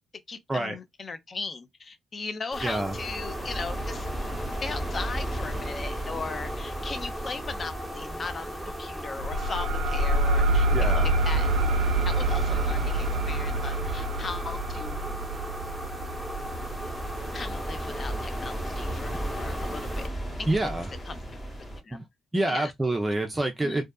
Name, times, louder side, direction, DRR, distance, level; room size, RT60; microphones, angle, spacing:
voice 1, 0.3-4.1 4.5-11.6 12.1-15.1 17.3-20.1 20.4-20.5 21.0-21.5 21.8-22.0 22.5-22.7 23.6-23.8, left 4 dB, 40° left, 0.6 m, -38 dB
sound 1, 2.5-20.1, equal, 5° left, 1.0 m, -37 dB
voice 2, 2.6-3.0 10.7-11.1 20.5-20.9 21.9-22.0 22.3-23.8, right 2 dB, 15° right, 0.5 m, -27 dB
sound 2, 2.9-21.8, right 1 dB, 20° left, 1.0 m, -36 dB
sound 3, 9.2-18.4, right 1 dB, 85° right, 0.3 m, -27 dB
2.6 x 2.3 x 2.2 m
cardioid pair, 75°, 0 cm